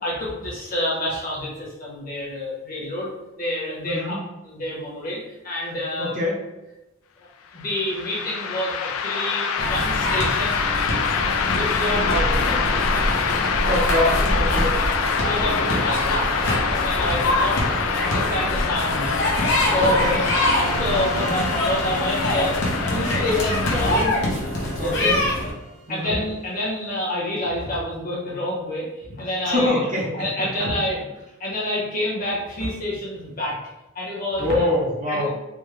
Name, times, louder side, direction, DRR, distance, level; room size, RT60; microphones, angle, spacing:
voice 1, 0.0-4.2 4.4-6.2 7.2-7.3 7.5-10.6 11.1-13.1 14.3-14.6 15.1-17.6 18.0-19.1 19.7-22.6 22.9-24.2 24.8-25.2 25.9-29.9 30.1-31.0 31.4-33.6 33.9-34.7 35.1-35.3, left 1 dB, 40° left, -5 dB, 1.1 m, -28 dB
voice 2, 3.8-4.2 6.0-6.4 13.7-14.7 19.8-20.2 21.2-21.3 24.8-25.2 25.9-26.2 29.4-30.0 30.4-30.5 34.4-35.3, left 1 dB, 35° right, -4 dB, 0.7 m, -25 dB
sound 1, 7.6-24.0, left 6 dB, 75° left, 0.3 m, -25 dB
sound 2, 9.6-25.5, left 1 dB, 55° left, 0.9 m, -24 dB
sound 3, 19.8-26.5, right 2 dB, 90° right, 0.6 m, -36 dB
3.5 x 2.2 x 3.3 m, 0.98 s
head